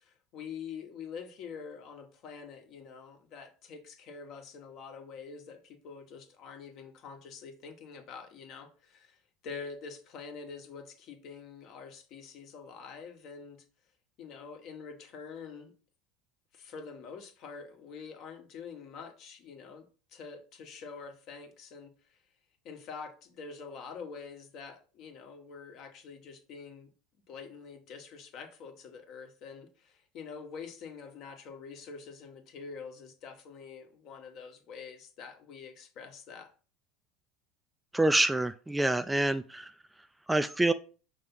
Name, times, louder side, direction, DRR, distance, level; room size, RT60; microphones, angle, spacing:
voice 1, 0.0-9.2 9.4-13.6 14.2-15.7 16.5-22.2 22.6-26.9 27.3-36.5, left 5 dB, 55° left, 1.3 m, -46 dB
voice 2, 37.9-39.7 40.3-40.7, right 2 dB, 5° right, 0.3 m, -26 dB
5.8 x 3.3 x 5.4 m
supercardioid pair, 115°, 0 cm